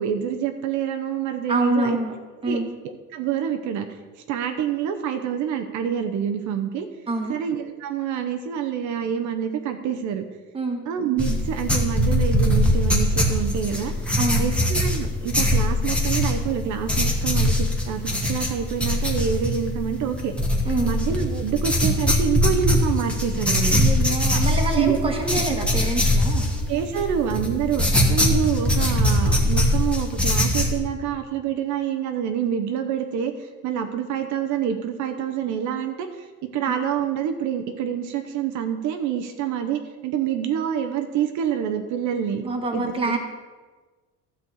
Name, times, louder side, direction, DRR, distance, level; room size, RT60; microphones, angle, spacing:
voice 1, 0.0-2.0 2.4-2.6 3.1-3.9 4.3-6.9 7.3-10.3 10.8-13.9 14.4-20.3 20.8-23.8 24.3-24.4 24.7-25.0 25.5-25.6 26.7-27.8 28.1-42.4 42.7-43.2, right 8 dB, 65° right, 6 dB, 0.9 m, -27 dB
voice 2, 1.5-2.1 2.4-2.7 7.1-7.4 10.5-10.8 14.2-14.5 20.6-20.9 23.7-26.5 42.4-43.2, right 2 dB, 15° right, 2 dB, 1.5 m, -26 dB
sound 1, 11.2-30.8, left 1 dB, 5° left, 1.4 m, -22 dB
12.5 x 4.5 x 7.9 m, 1.3 s
cardioid pair, 145°, 31 cm